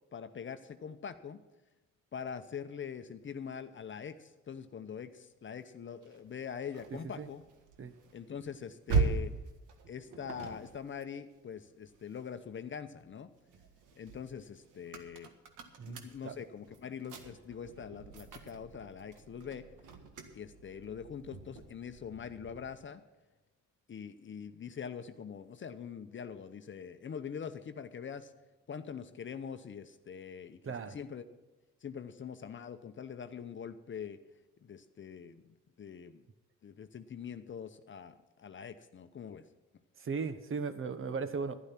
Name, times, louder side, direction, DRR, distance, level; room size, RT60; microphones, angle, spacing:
voice 1, 0.1-1.4 2.1-7.4 8.1-9.3 9.9-13.3 14.0-15.3 15.8-19.7 20.3-23.0 23.9-28.3 28.7-31.2 31.8-34.2 34.6-36.2 36.6-39.5, left 7 dB, 40° left, 9 dB, 0.8 m, -43 dB
sound 1, 6.0-12.6 13.0-22.8, right 4 dB, 85° right, 1.6 m, -40 dB
voice 2, 15.8-16.3 30.6-31.0 40.0-41.6, right 5 dB, 45° right, 12 dB, 1.1 m, -37 dB
11.5 x 11.5 x 5.9 m, 1.1 s
cardioid pair, 90°, 30 cm